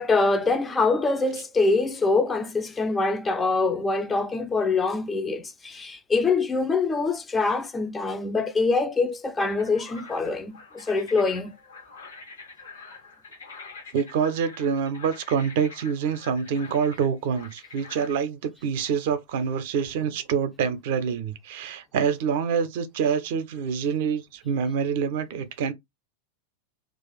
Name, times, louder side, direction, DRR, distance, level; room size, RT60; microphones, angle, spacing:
voice 1, 0.0-11.5, left 3 dB, 15° left, 0.5 m, -24 dB
sound 1, 9.4-18.1, left 4 dB, 70° left, 1.1 m, -45 dB
voice 2, 13.9-25.7, right 6 dB, 50° right, 0.6 m, -26 dB
2.5 x 2.4 x 3.9 m
figure-of-eight pair, 90°, 0 cm